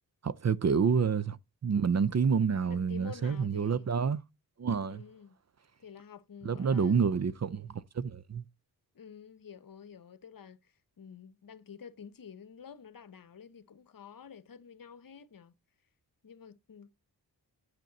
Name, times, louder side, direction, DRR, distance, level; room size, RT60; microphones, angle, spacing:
voice 1, 0.2-1.4 1.6-4.2 4.6-5.0 6.4-8.4, right 6 dB, 40° right, 0.5 m, -28 dB
voice 2, 2.7-3.9 4.9-5.4 5.8-7.1 8.9-15.5 16.2-16.9, left 7 dB, 55° left, 1.0 m, -50 dB
9.2 x 6.7 x 4.0 m
cardioid pair, 75°, 40 cm